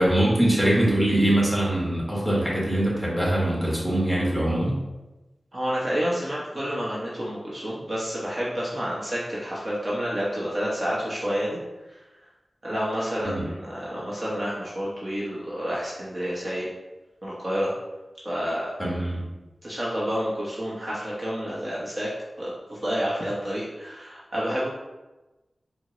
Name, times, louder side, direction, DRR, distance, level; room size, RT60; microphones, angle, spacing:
voice 1, 0.0-4.8 13.2-13.5 18.8-19.2, right 1 dB, ahead, -5 dB, 1.4 m, -23 dB
voice 2, 5.5-11.6 11.9-12.0 12.6-16.7 17.2-17.7 18.2-18.7 19.6-22.1 22.4-24.7, equal, 30° right, -7 dB, 0.9 m, -29 dB
4.5 x 2.1 x 3.8 m, 1.1 s
wide cardioid pair, 70°, 0 cm